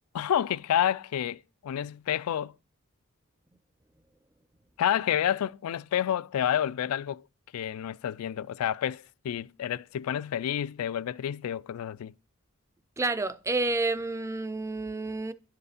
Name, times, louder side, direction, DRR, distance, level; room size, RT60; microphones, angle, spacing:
voice 1, 0.1-2.5 4.8-7.2 7.5-12.1, left 10 dB, 80° left, 0.3 m, -29 dB
voice 2, 13.0-15.3, right 2 dB, 15° right, 0.4 m, -29 dB
11.0 x 4.7 x 4.9 m
head